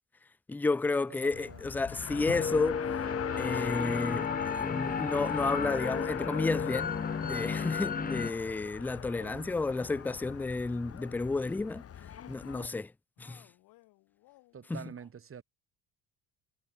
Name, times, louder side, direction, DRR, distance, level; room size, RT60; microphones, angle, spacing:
voice 1, 0.5-2.9 3.4-4.3 4.6-6.9 7.2-11.8 12.3-12.9 13.2-13.4 14.7-14.8, left 3 dB, 5° left, 0.4 m, -31 dB
voice 2, 1.1-1.6 9.2-9.5 14.5-15.4, right 7 dB, 35° right, 3.0 m, -46 dB
sound 1, 1.3-3.7 5.3-6.9 9.1-11.4 13.2-14.7, left 20 dB, 70° left, 7.2 m, -60 dB
Race car auto racing, 1.3-12.7, left 9 dB, 40° left, 1.5 m, -40 dB
sound 2, 2.0-8.3, left 5 dB, 25° left, 1.4 m, -34 dB
hypercardioid pair, 70°, 35 cm